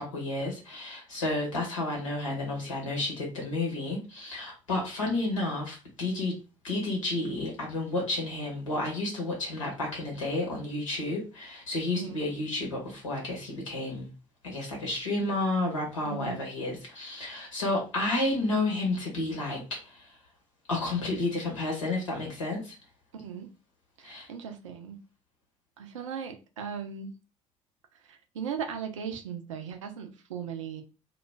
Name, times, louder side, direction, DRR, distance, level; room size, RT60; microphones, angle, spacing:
voice 1, 0.0-6.3 6.6-14.1 14.4-20.2 20.7-22.7 24.0-24.3, left 2 dB, 80° left, -1 dB, 0.9 m, -31 dB
voice 2, 16.0-16.4 23.1-23.5 24.0-25.0 25.8-27.2 28.1-30.8, right 7 dB, 75° right, 5 dB, 0.4 m, -38 dB
2.2 x 2.1 x 3.2 m, 0.32 s
figure-of-eight pair, 50°, 16 cm